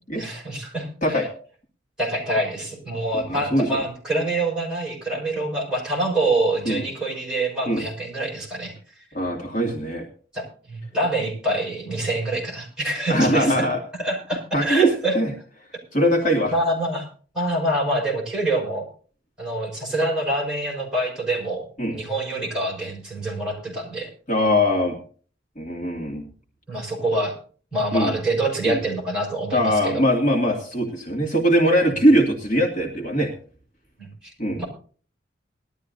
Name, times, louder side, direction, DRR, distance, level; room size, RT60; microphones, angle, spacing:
voice 1, 0.2-1.3 2.0-8.7 10.3-13.5 14.0-15.2 16.5-17.1 17.3-18.9 19.4-24.1 26.7-27.4 27.7-30.1 34.0-34.1 34.6-34.7, right 1 dB, 5° right, -5 dB, 5.8 m, -26 dB
voice 2, 3.3-3.7 6.7-6.8 7.7-7.8 9.1-10.0 13.1-13.8 14.5-15.3 15.9-16.5 21.8-22.0 24.3-25.0 25.6-26.3 27.9-28.1 28.6-28.8 29.5-33.3 34.4-34.6, equal, 40° left, 0 dB, 2.4 m, -21 dB
20.5 x 12.5 x 2.7 m, 0.42 s
head